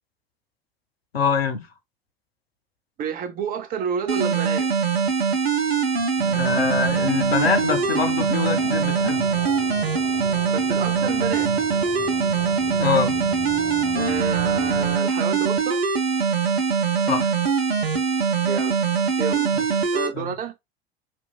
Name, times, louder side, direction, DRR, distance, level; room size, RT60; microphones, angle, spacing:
voice 1, 1.1-1.7 6.3-9.3 12.8-13.2 17.1-17.3 19.5-19.6 20.1-20.3, left 6 dB, 80° left, 0.7 m, -24 dB
voice 2, 3.0-4.7 10.5-11.5 14.0-15.8 18.5-18.8 19.2-19.5 19.9-20.5, right 7 dB, 30° right, 0.6 m, -29 dB
sound 1, 4.1-20.1, right 5 dB, 80° right, 0.7 m, -22 dB
sound 2, 6.2-15.0, left 4 dB, 45° left, 1.0 m, -38 dB
2.9 x 2.5 x 2.3 m
figure-of-eight pair, 80°, 30 cm